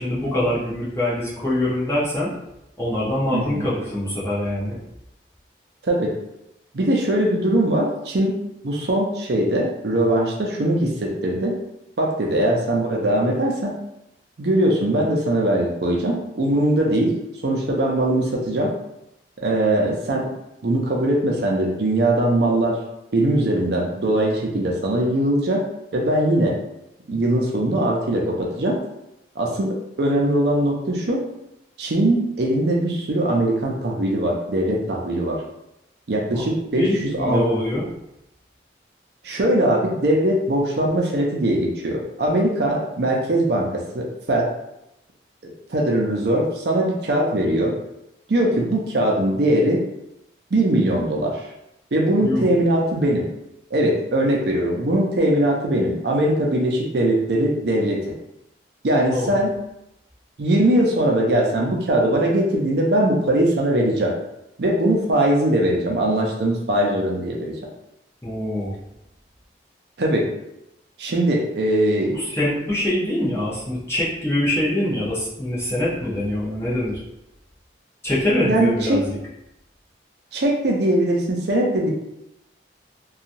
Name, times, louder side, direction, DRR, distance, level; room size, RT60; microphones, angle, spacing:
voice 1, 0.0-2.3 2.8-4.8 36.3-36.4 36.8-37.8 52.2-52.4 59.1-59.4 68.2-68.8 72.1-77.0 78.0-79.2, left 1 dB, 15° left, -8 dB, 0.7 m, -24 dB
voice 2, 3.3-3.7 5.8-6.1 6.7-8.3 8.6-11.6 12.0-13.7 14.4-17.2 17.4-18.7 19.4-20.3 20.6-22.8 23.1-25.6 25.9-26.6 27.1-28.8 29.4-31.2 31.8-35.4 36.1-37.5 39.2-44.5 45.4-47.7 48.3-49.8 50.5-51.5 51.9-53.3 53.7-58.0 58.8-59.5 60.4-64.1 64.6-67.6 70.0-70.3 71.0-72.2 78.4-79.0 80.3-81.9, right 1 dB, 60° right, -1 dB, 0.5 m, -21 dB
2.9 x 2.3 x 2.6 m, 0.86 s
head